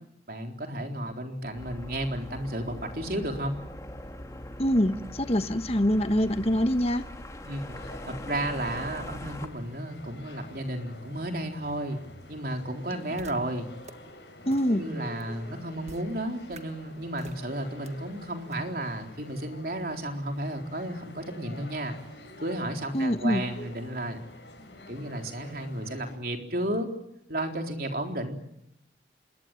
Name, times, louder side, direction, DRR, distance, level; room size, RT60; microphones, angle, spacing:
voice 1, 0.3-3.6 7.4-12.0 12.3-13.7 14.4-21.9 22.4-24.2 24.9-26.9 27.3-28.3, right 1 dB, 55° right, 3 dB, 4.0 m, -33 dB
sound 1, 1.5-9.5, left 1 dB, 20° left, 2.4 m, -41 dB
voice 2, 4.6-7.1 14.4-14.8 22.9-23.4, equal, 35° left, 10 dB, 1.2 m, -24 dB
sound 2, 7.7-26.2, left 1 dB, 70° left, 7.8 m, -48 dB
sound 3, 13.2-13.3 13.8-13.9 14.5-14.6 15.2-15.3 15.8-16.0 16.5-16.6 17.2-17.4 17.8-17.9 18.5-18.6, right 3 dB, 40° right, 1.5 m, -45 dB
26.5 x 21.5 x 9.2 m, 0.77 s
head